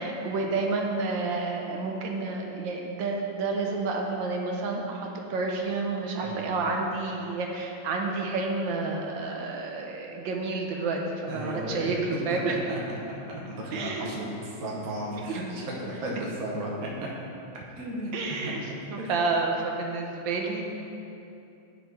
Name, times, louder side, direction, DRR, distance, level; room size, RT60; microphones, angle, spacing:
voice 1, 0.0-12.6 13.7-14.1 15.3-15.4 18.1-18.6 18.9-20.6, right 3 dB, 70° right, 1 dB, 1.3 m, -30 dB
voice 2, 6.2-6.6 11.3-12.8 13.3-17.1 17.8-19.1, right 1 dB, 55° right, -3 dB, 1.2 m, -34 dB
9.5 x 4.1 x 4.5 m, 2.7 s
omnidirectional pair, 2.3 m